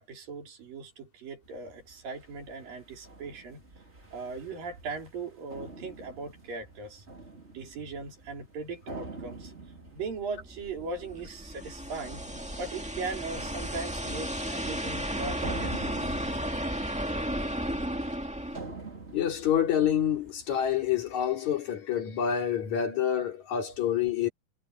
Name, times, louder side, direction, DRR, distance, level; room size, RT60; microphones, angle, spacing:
voice 1, 0.0-3.6 4.1-7.0 7.5-9.5 9.9-12.2 12.6-15.9, right 4 dB, 85° right, 6.1 m, -39 dB
sound 1, 1.4-21.3, right 3 dB, 20° right, 2.9 m, -47 dB
sound 2, 10.4-18.6, equal, 5° right, 1.1 m, -34 dB
voice 2, 19.1-24.3, left 9 dB, 55° left, 4.1 m, -27 dB
omnidirectional pair, 3.9 m